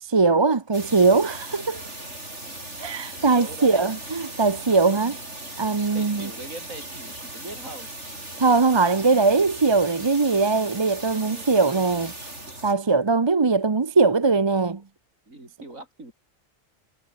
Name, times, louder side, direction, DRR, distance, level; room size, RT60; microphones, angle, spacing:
voice 1, 0.0-1.8 2.8-5.2 5.6-6.3 8.4-12.1 12.6-14.8, right 4 dB, 30° right, 0.6 m, -21 dB
sound 1, 0.7-12.7, right 1 dB, 60° right, 8.0 m, -38 dB
voice 2, 3.2-3.9 5.9-7.9 11.2-11.8 15.3-16.1, right 2 dB, 80° right, 7.0 m, -41 dB
omnidirectional pair, 1.4 m